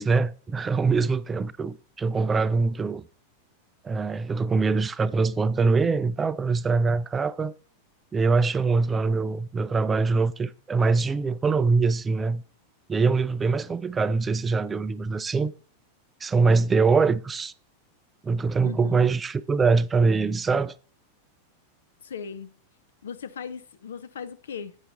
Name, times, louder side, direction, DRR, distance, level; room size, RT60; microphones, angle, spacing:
voice 1, 0.0-3.1 3.8-7.5 8.1-12.4 12.9-15.5 16.2-17.5 18.2-20.7, right 4 dB, 15° right, 0.4 m, -23 dB
voice 2, 18.6-19.1 22.0-22.6 23.0-24.8, left 7 dB, 65° left, 0.5 m, -38 dB
8.8 x 5.7 x 3.9 m
figure-of-eight pair, 90°, 0 cm